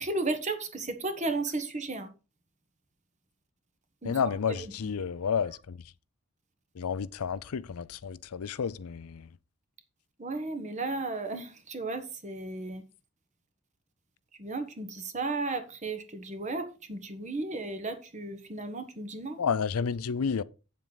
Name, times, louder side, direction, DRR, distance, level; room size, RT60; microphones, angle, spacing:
voice 1, 0.0-2.1 4.0-4.2 4.6-4.9 10.2-12.8 14.4-19.4, right 3 dB, 35° right, 1.2 m, -34 dB
voice 2, 4.0-5.8 6.8-9.3 19.4-20.4, left 6 dB, 85° left, 0.5 m, -31 dB
8.5 x 7.5 x 4.0 m
head